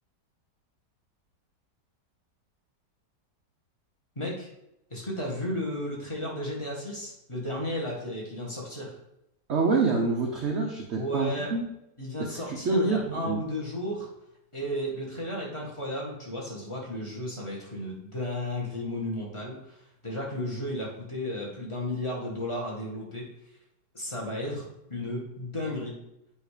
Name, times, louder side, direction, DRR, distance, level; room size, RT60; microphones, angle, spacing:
voice 1, 4.1-4.5 4.9-8.9 10.9-11.5 12.0-14.1 14.5-19.8 20.0-23.3 23.9-26.0, left 1 dB, 20° left, -3 dB, 1.5 m, -33 dB
voice 2, 9.5-11.7 12.2-13.4, right 3 dB, 50° right, 0 dB, 0.9 m, -27 dB
8.6 x 3.2 x 4.9 m, 0.83 s
omnidirectional pair, 1.9 m